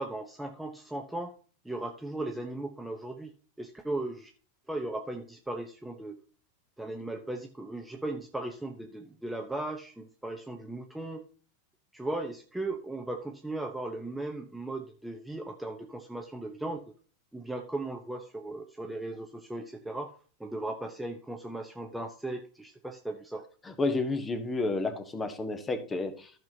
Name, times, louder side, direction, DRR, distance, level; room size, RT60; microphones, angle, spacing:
voice 1, 0.0-1.3 1.6-3.3 3.6-4.3 4.7-6.2 6.8-11.2 11.9-16.8 17.3-20.1 20.4-23.4, right 2 dB, 5° right, 3 dB, 1.0 m, -37 dB
voice 2, 23.8-26.3, left 3 dB, 15° left, 9 dB, 1.5 m, -30 dB
14.5 x 6.0 x 2.8 m, 0.40 s
figure-of-eight pair, 90°, 0 cm